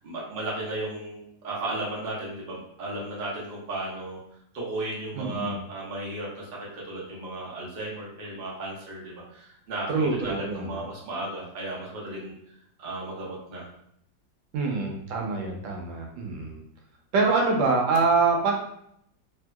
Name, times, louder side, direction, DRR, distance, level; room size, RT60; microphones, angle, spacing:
voice 1, 0.0-4.2 4.5-12.5 12.8-13.7, right 2 dB, 45° right, -5 dB, 0.8 m, -35 dB
voice 2, 5.1-5.6 9.9-10.8 14.5-16.6 17.1-18.5, right 4 dB, 85° right, 1 dB, 1.4 m, -25 dB
3.2 x 2.7 x 2.2 m, 0.72 s
omnidirectional pair, 2.0 m